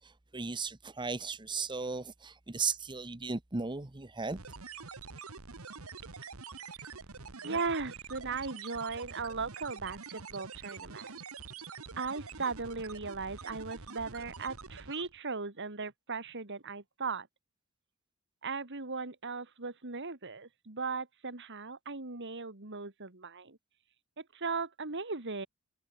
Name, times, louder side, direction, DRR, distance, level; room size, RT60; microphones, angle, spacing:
voice 1, 0.0-4.4, right 4 dB, 20° right, 1.0 m, -36 dB
sound 1, 4.3-15.2, right 5 dB, 70° right, 1.8 m, -46 dB
voice 2, 7.2-11.2 12.0-17.3 18.4-23.6 24.2-25.5, right 4 dB, 55° right, 2.3 m, -37 dB
head